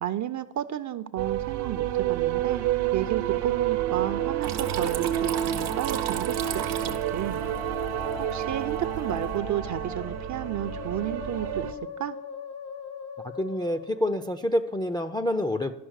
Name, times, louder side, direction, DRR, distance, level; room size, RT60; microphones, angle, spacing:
voice 1, 0.0-7.4 8.2-12.2, right 10 dB, 35° right, 13 dB, 0.6 m, -32 dB
Musical instrument, 1.1-14.1, left 4 dB, 75° left, 1.6 m, -42 dB
sound 1, 1.2-11.7, right 12 dB, 60° right, 0.9 m, -29 dB
Water tap faucet / Trickle dribble, 4.4-9.4, right 8 dB, 85° right, 1.0 m, -36 dB
voice 2, 13.2-15.7, left 1 dB, 10° left, 6 dB, 0.4 m, -27 dB
11.5 x 5.7 x 6.5 m, 1.0 s
hypercardioid pair, 60°, 49 cm